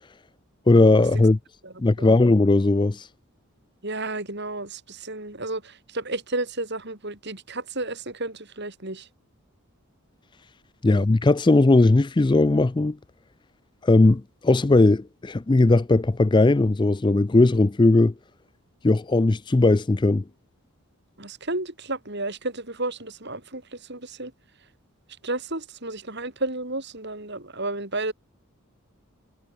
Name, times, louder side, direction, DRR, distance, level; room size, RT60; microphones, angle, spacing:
voice 1, 0.7-1.4 1.8-3.1 10.8-13.0 13.8-18.1 18.8-20.2, left 2 dB, 20° left, 0.4 m, -18 dB
voice 2, 1.6-2.2 3.8-9.1 10.9-11.1 21.2-24.3 25.2-28.1, right 2 dB, 50° right, 4.9 m, -32 dB
head